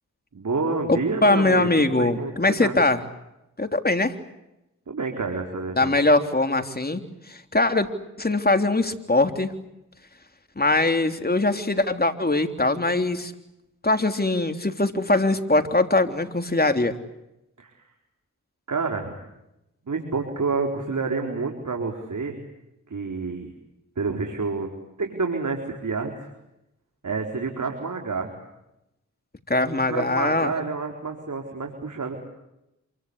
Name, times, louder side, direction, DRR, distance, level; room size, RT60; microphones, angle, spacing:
voice 1, 0.3-2.3 2.6-2.7 4.9-6.1 17.6-17.8 18.7-19.2 19.8-22.4 22.9-23.5 24.0-24.7 25.0-26.3 27.0-28.3 29.9-32.2, right 4 dB, 70° right, 2 dB, 4.5 m, -28 dB
voice 2, 0.9-3.0 3.6-4.1 5.8-7.0 7.3-7.9 8.2-9.5 10.6-13.3 13.8-17.0 29.5-30.5, left 2 dB, 30° left, 6 dB, 3.5 m, -22 dB
28.0 x 24.5 x 8.2 m, 0.88 s
cardioid pair, 45°, 31 cm